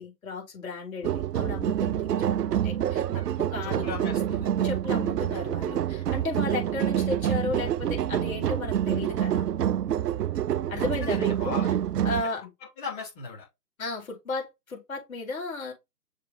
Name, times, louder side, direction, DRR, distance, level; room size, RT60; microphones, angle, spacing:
voice 1, 0.0-3.2 3.5-3.9 4.6-9.4 10.7-11.7 12.0-12.4 13.8-15.7, left 3 dB, 55° left, 5.0 m, -34 dB
sound 1, 1.0-12.2, right 10 dB, 70° right, 0.5 m, -27 dB
voice 2, 3.6-4.5 10.7-11.7 12.2-12.5 12.8-13.5, left 5 dB, 30° left, 4.0 m, -38 dB
6.5 x 3.6 x 4.7 m
figure-of-eight pair, 145°, 50 cm